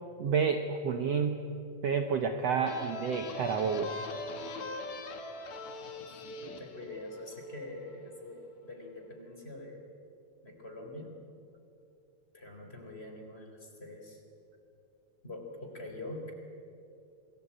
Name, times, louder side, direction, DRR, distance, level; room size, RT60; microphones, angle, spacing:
voice 1, 0.2-1.5 1.8-3.9, right 6 dB, 60° right, 6 dB, 1.9 m, -30 dB
sound 1, 2.6-8.1, left 3 dB, 60° left, 3.0 m, -42 dB
voice 2, 6.4-9.8 10.4-11.2 12.3-14.2 15.2-16.3, left 1 dB, 20° left, 2 dB, 3.6 m, -44 dB
27.5 x 19.5 x 8.7 m, 2.7 s
omnidirectional pair, 3.8 m